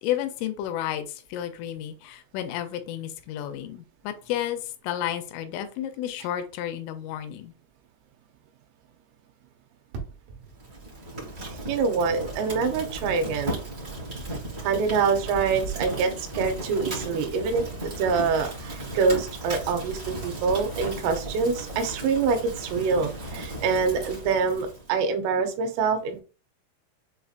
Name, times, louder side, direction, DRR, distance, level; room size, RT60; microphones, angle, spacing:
voice 1, 0.0-4.6 4.8-7.5, left 11 dB, 85° left, 8 dB, 3.0 m, -31 dB
sound 1, 9.9-11.0 13.3-13.8 15.3-16.6, right 6 dB, 70° right, 2.8 m, -40 dB
Fire, 10.5-24.9, right 1 dB, 35° right, 1.0 m, -36 dB
voice 2, 11.4-13.6 14.6-26.2, right 5 dB, 85° right, 5 dB, 3.4 m, -25 dB
7.8 x 2.8 x 2.4 m, 0.35 s
omnidirectional pair, 5.7 m